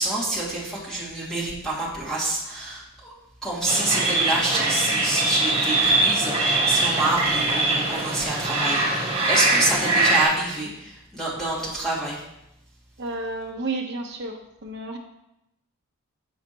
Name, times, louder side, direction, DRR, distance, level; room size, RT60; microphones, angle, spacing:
voice 1, 0.0-3.1 3.4-12.2, right 2 dB, ahead, -8 dB, 2.2 m, -27 dB
sound 1, 3.6-10.2, right 2 dB, 30° right, 1.7 m, -22 dB
voice 2, 13.0-15.0, right 2 dB, 55° right, 2 dB, 1.0 m, -31 dB
7.2 x 6.5 x 2.9 m, 0.86 s
head